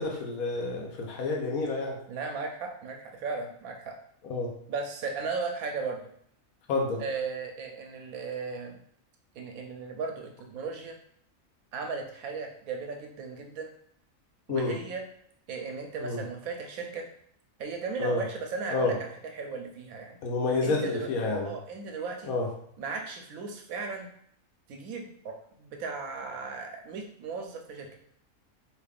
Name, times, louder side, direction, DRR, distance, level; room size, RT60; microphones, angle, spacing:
voice 1, 0.0-2.0 4.2-4.5 6.7-7.0 14.5-14.7 16.0-16.2 18.0-18.2 18.7-19.0 20.2-21.5 22.3-22.5, left 3 dB, 85° left, 0 dB, 1.2 m, -29 dB
voice 2, 2.1-3.9 4.7-6.1 7.0-8.8 9.3-11.0 11.7-13.7 14.5-15.0 15.5-17.1 17.6-19.0 19.3-20.2 20.6-21.1 21.4-22.3 22.8-24.1 24.7-28.0, right 4 dB, 90° right, 3 dB, 1.1 m, -36 dB
3.4 x 2.9 x 2.3 m, 0.66 s
omnidirectional pair, 1.4 m